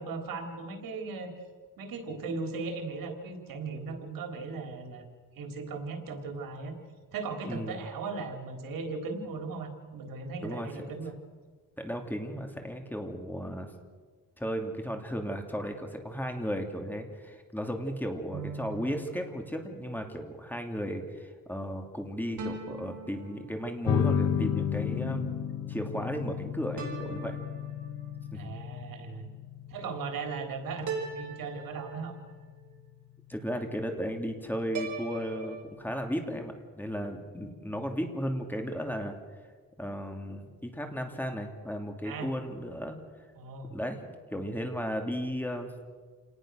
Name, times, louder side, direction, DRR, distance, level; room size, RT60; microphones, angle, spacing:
voice 1, 0.0-1.3 1.8-5.1 5.3-6.8 7.1-11.2 28.3-29.3 29.7-30.9 31.2-32.1 42.0-42.3 43.3-43.7, right 4 dB, 85° right, 4 dB, 3.7 m, -37 dB
voice 2, 7.5-7.8 10.4-10.7 11.8-13.7 14.4-25.3 25.7-27.4 28.3-28.6 33.3-39.2 39.8-43.0 43.7-45.7, equal, 5° left, 4 dB, 2.7 m, -35 dB
sound 1, 18.3-20.0 22.4-24.1 26.8-28.3 30.9-32.5 34.7-35.6, right 4 dB, 60° right, 5.1 m, -40 dB
sound 2, 23.9-34.9, left 8 dB, 50° left, 1.8 m, -34 dB
28.0 x 19.0 x 6.4 m, 1.5 s
cardioid pair, 125°, 34 cm